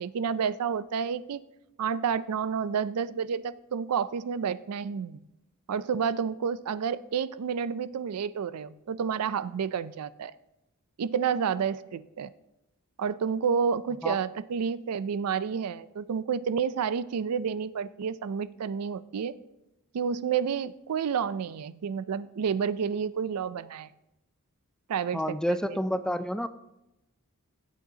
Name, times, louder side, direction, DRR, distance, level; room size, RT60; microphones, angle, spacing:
voice 1, 0.0-1.4 1.8-5.3 5.7-10.3 11.0-12.3 13.0-19.4 19.9-23.9 24.9-25.6, right 6 dB, 85° right, 16 dB, 0.4 m, -30 dB
voice 2, 25.1-26.5, equal, 5° left, 11 dB, 0.3 m, -29 dB
16.5 x 8.2 x 2.8 m, 0.92 s
head